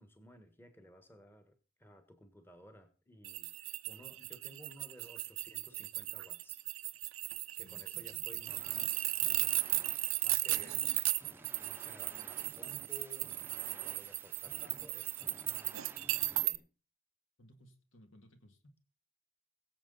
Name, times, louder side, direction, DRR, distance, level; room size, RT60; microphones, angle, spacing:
voice 1, 0.0-6.6 7.6-9.7 10.2-11.1 11.6-16.7, left 1 dB, 10° left, 1.4 m, -57 dB
sound 1, 3.2-16.6, right 18 dB, 85° right, 0.7 m, -36 dB
voice 2, 7.5-8.3 9.6-9.9 12.1-12.3 17.4-18.6, equal, 70° left, 2.4 m, -61 dB
sound 2, 8.5-16.5, right 2 dB, 10° right, 0.8 m, -55 dB
22.5 x 7.5 x 4.0 m
head